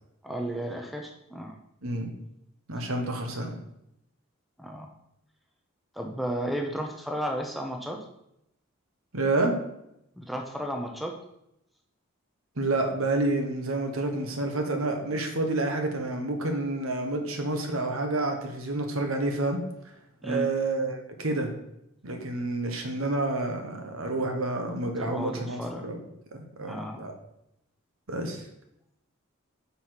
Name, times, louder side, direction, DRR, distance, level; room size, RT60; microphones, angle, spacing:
voice 1, 0.2-1.5 4.6-4.9 6.0-8.0 10.2-11.2 20.2-20.5 25.0-25.8 26.6-27.0, right 1 dB, ahead, 2 dB, 0.7 m, -33 dB
voice 2, 1.8-2.1 2.7-3.6 9.1-9.6 12.6-19.6 20.2-21.5 22.0-26.0 26.3-27.1 28.1-28.4, right 2 dB, 80° right, 4 dB, 1.2 m, -29 dB
5.7 x 4.8 x 5.8 m, 0.80 s
head